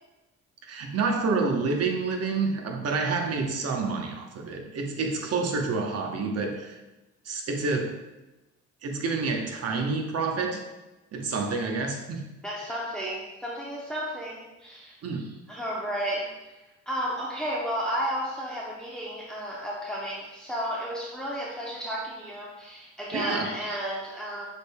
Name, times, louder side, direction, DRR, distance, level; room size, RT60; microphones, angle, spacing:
voice 1, 0.6-6.8 7.2-8.0 8.8-10.6 11.1-12.2 15.0-15.4 23.1-23.8, right 4 dB, 50° right, 3 dB, 0.9 m, -28 dB
voice 2, 12.4-15.0 15.5-16.6 16.9-24.4, equal, ahead, -4 dB, 0.7 m, -33 dB
6.5 x 3.5 x 2.2 m, 1.0 s
supercardioid pair, 65°, 31 cm